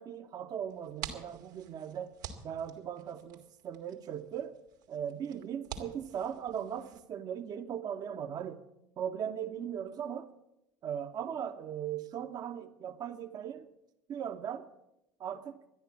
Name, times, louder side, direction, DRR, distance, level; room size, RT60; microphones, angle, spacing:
voice 1, 0.0-2.1 2.4-4.6 4.9-8.6 9.0-10.3 10.8-13.7 14.1-14.7 15.2-15.6, right 8 dB, 40° right, 0.9 m, -38 dB
sound 1, 0.7-7.0, right 8 dB, 75° right, 2.0 m, -48 dB
13.0 x 11.0 x 8.5 m
hypercardioid pair, 70°, 10 cm